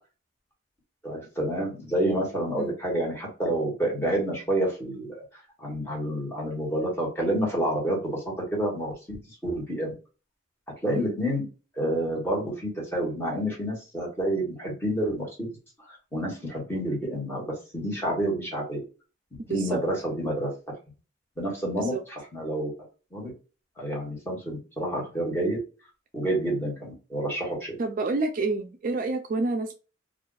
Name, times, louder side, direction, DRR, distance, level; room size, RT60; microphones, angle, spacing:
voice 1, 1.0-5.2 5.6-8.2 8.5-9.9 10.8-11.4 11.7-15.5 15.8-18.8 19.5-20.5 21.4-21.9 22.3-22.7 23.1-23.3 23.8-25.6 26.1-27.7, right 1 dB, 10° left, 1.3 m, -29 dB
voice 2, 10.9-11.2 19.5-19.8 21.7-22.0 27.8-29.7, right 3 dB, 45° right, 0.3 m, -29 dB
2.4 x 2.4 x 3.8 m
head